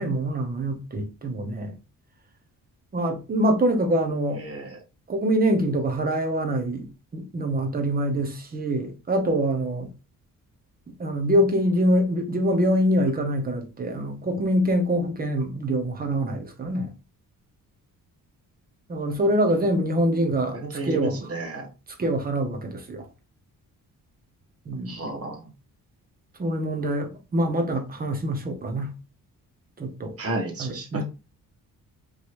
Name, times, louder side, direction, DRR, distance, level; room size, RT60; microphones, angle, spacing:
voice 1, 0.0-1.7 2.9-4.4 5.1-6.9 7.1-9.9 11.0-16.9 18.9-21.3 22.0-23.1 24.7-25.1 26.4-29.0 29.8-30.1 30.6-31.0, right 1 dB, 25° right, 1.0 m, -25 dB
voice 2, 4.4-4.7 20.2-21.7 24.9-25.4 30.2-31.0, right 2 dB, 45° right, 1.3 m, -32 dB
5.1 x 3.2 x 2.5 m
wide cardioid pair, 175°, 34 cm